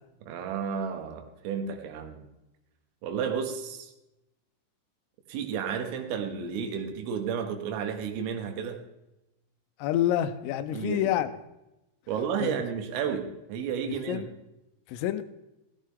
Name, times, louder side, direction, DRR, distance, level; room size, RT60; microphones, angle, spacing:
voice 1, 0.3-2.3 3.0-3.9 5.3-8.8 10.7-11.1 12.1-14.3, right 7 dB, 80° right, 5 dB, 3.9 m, -32 dB
voice 2, 9.8-11.3 12.4-12.6 14.1-14.3 14.9-15.2, left 12 dB, 85° left, 11 dB, 3.2 m, -27 dB
15.5 x 14.0 x 3.6 m, 0.94 s
omnidirectional pair, 5.9 m